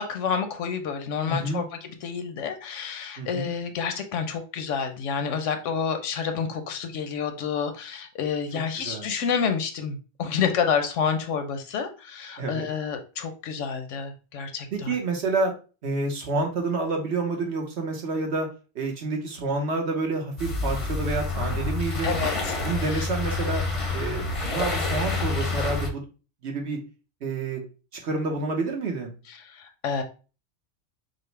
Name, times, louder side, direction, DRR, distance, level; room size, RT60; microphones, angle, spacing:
voice 1, 0.0-14.9 22.0-23.1 29.3-30.0, left 6 dB, 90° left, 7 dB, 1.0 m, -29 dB
voice 2, 1.3-1.6 3.2-3.5 8.5-9.1 12.4-12.7 14.7-15.5 15.8-18.5 18.7-22.2 22.6-23.6 23.9-26.0 26.4-26.8 27.2-27.6 28.0-29.1, right 3 dB, 65° right, 2 dB, 1.2 m, -28 dB
sound 1, 20.4-25.9, left 3 dB, 35° left, 0.6 m, -28 dB
5.3 x 2.1 x 3.2 m, 0.34 s
omnidirectional pair, 1.2 m